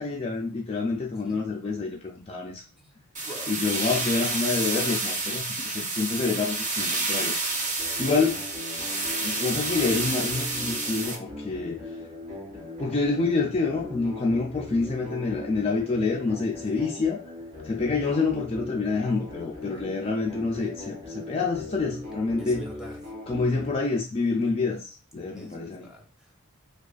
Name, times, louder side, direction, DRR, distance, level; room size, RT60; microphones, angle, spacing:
voice 1, 0.0-2.6 3.5-7.4 7.6-8.4 9.2-11.8 12.8-17.2 17.6-22.6 23.3-25.9, left 4 dB, 25° left, -1 dB, 0.4 m, -27 dB
sound 1, 3.1-11.2, right 3 dB, 35° right, 0.8 m, -29 dB
voice 2, 3.2-3.6 16.7-16.9 19.6-20.0 22.4-23.0 25.3-26.4, equal, 5° right, -1 dB, 0.8 m, -45 dB
sound 2, 7.8-23.8, left 2 dB, 55° right, 1.9 m, -39 dB
4.7 x 2.3 x 2.4 m, 0.35 s
head